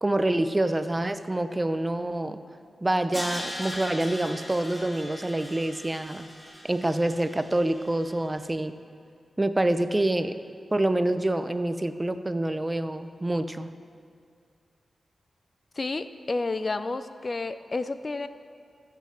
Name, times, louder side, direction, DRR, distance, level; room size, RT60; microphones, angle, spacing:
voice 1, 0.0-2.4 2.8-6.3 6.6-8.8 9.4-10.4 10.7-13.7, right 1 dB, 25° right, 11 dB, 0.5 m, -26 dB
Crash cymbal, 3.1-8.2, equal, 20° left, 2.0 m, -40 dB
voice 2, 15.8-18.3, left 3 dB, 45° left, 12 dB, 0.4 m, -30 dB
15.5 x 7.7 x 3.3 m, 2.3 s
cardioid pair, 45°, 0 cm